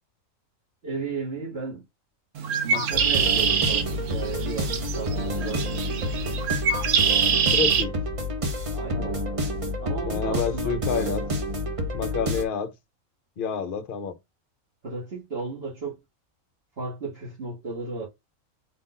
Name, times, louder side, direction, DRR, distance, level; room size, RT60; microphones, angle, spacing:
voice 1, 0.8-1.8 2.6-6.4 8.7-9.2 9.8-10.8 14.8-16.0 16.8-18.1, right 4 dB, 50° right, 1.7 m, -34 dB
Bird, 2.4-7.8, right 6 dB, 70° right, 1.1 m, -25 dB
sound 1, 2.9-12.4, left 1 dB, 30° right, 0.7 m, -29 dB
voice 2, 7.5-8.0 10.1-11.3 11.9-12.7 13.4-14.1, left 6 dB, 50° left, 0.7 m, -28 dB
4.5 x 2.6 x 3.9 m
omnidirectional pair, 1.4 m